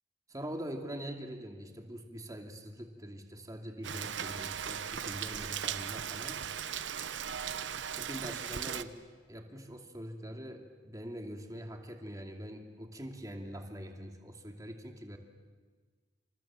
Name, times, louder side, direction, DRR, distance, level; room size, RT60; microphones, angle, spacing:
voice 1, 0.3-6.4 7.9-9.0 9.3-15.2, equal, 20° right, 3 dB, 2.6 m, -43 dB
Rain, 3.8-8.8, right 8 dB, 80° right, 0.9 m, -38 dB
28.0 x 27.0 x 7.6 m, 1.5 s
head